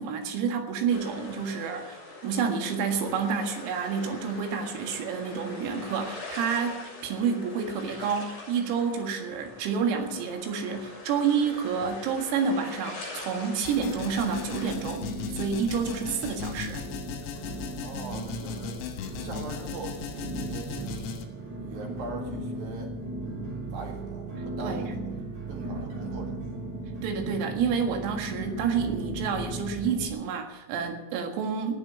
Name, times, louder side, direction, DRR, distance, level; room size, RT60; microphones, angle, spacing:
voice 1, 0.0-16.9 24.6-24.9 27.0-31.8, right 6 dB, 85° right, 4 dB, 4.5 m, -29 dB
sound 1, 0.9-14.7, left 3 dB, 40° left, 6.8 m, -43 dB
sound 2, 11.7-12.7 13.0-13.6 14.1-14.2 14.9-30.1, right 2 dB, 35° right, 3.9 m, -37 dB
sound 3, 13.6-21.3, left 6 dB, 90° left, 4.2 m, -37 dB
voice 2, 17.8-18.8 19.2-21.1 21.6-22.9 23.7-26.6, right 3 dB, 55° right, 2 dB, 2.9 m, -41 dB
18.0 x 7.6 x 8.7 m, 1.1 s
omnidirectional pair, 6.0 m